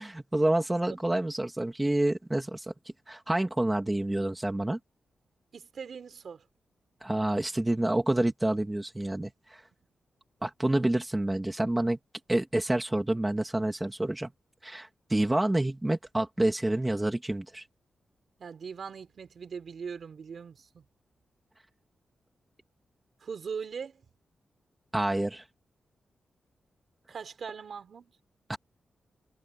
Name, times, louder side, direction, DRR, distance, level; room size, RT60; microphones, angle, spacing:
voice 1, 0.0-2.7 3.1-4.8 7.0-9.6 10.4-12.0 12.3-14.3 14.6-17.6 24.9-25.4 28.5-28.6, right 1 dB, 10° right, 2.5 m, -28 dB
voice 2, 5.5-6.4 18.4-20.8 23.2-24.0 27.1-28.2, right 6 dB, 55° right, 3.8 m, -40 dB
wide cardioid pair, 170°, 0 cm